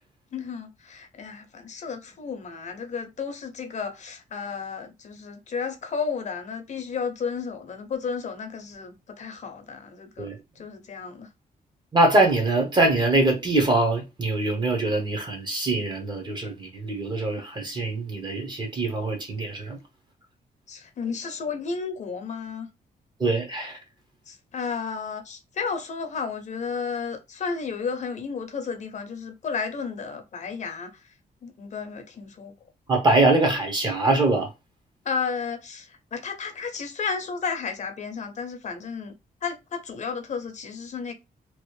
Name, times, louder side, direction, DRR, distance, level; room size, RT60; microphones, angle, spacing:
voice 1, 0.3-10.3 10.6-11.3 20.7-22.7 24.3-31.0 31.4-32.5 35.0-39.1 39.4-41.1, left 5 dB, 50° left, 0.7 m, -33 dB
voice 2, 11.9-19.8 23.2-23.8 32.9-34.5, right 2 dB, 25° right, 0.9 m, -23 dB
3.0 x 2.5 x 3.1 m
wide cardioid pair, 155°, 16 cm